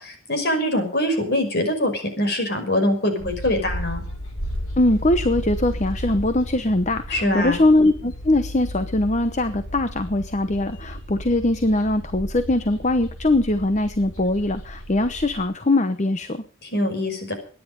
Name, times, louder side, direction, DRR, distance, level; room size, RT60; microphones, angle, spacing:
voice 1, 0.0-4.0 7.1-7.6 16.7-17.4, left 1 dB, 50° left, 6 dB, 5.6 m, -23 dB
sound 1, 3.2-15.4, equal, 85° left, 8.0 m, -34 dB
voice 2, 4.8-16.4, left 2 dB, 35° left, 10 dB, 0.9 m, -21 dB
23.0 x 10.5 x 5.4 m, 0.43 s
head